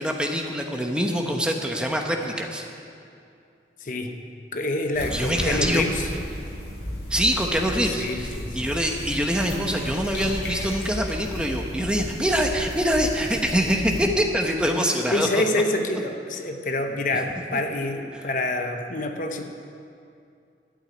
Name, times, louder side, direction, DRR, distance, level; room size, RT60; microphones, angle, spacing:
voice 1, 0.0-2.6 5.1-5.9 7.1-15.4 17.5-17.6 18.1-18.3, equal, 5° right, 2 dB, 0.9 m, -25 dB
voice 2, 3.8-4.1 4.5-6.1 7.9-8.6 15.1-19.4, left 2 dB, 45° left, 5 dB, 0.8 m, -27 dB
sound 1, 4.9-14.0, left 1 dB, 75° left, 4.0 m, -34 dB
12.5 x 8.1 x 9.3 m, 2.5 s
head